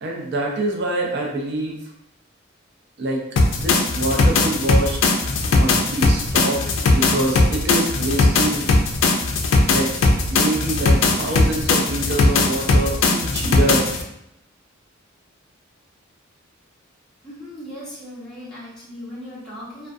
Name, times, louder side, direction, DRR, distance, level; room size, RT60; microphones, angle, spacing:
voice 1, 0.0-1.8 3.0-3.2 3.5-5.0 5.5-6.6 6.9-8.7 9.7-9.9 10.3-13.9, right 1 dB, 55° right, -1 dB, 0.5 m, -25 dB
sound 1, 3.4-14.0, left 2 dB, 75° left, 0.4 m, -19 dB
voice 2, 17.2-19.9, left 1 dB, 5° left, -10 dB, 0.9 m, -37 dB
2.3 x 2.2 x 2.5 m, 0.81 s
head